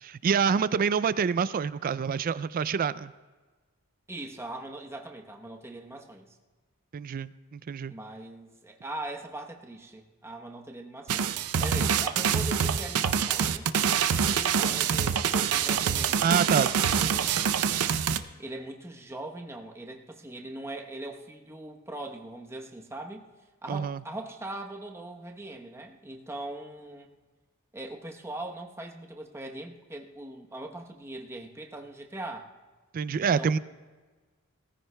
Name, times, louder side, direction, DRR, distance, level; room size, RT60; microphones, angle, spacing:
voice 1, 0.1-3.1 6.9-7.9 16.2-16.7 23.7-24.0 32.9-33.6, right 6 dB, 40° right, 17 dB, 0.3 m, -26 dB
voice 2, 4.1-6.3 7.9-17.4 18.4-23.3 23.6-27.1 27.7-32.5 33.2-33.6, right 2 dB, 10° right, 2 dB, 0.9 m, -41 dB
sound 1, 11.1-18.2, right 7 dB, 90° right, 0.5 m, -25 dB
19.5 x 14.5 x 2.2 m, 1.3 s
head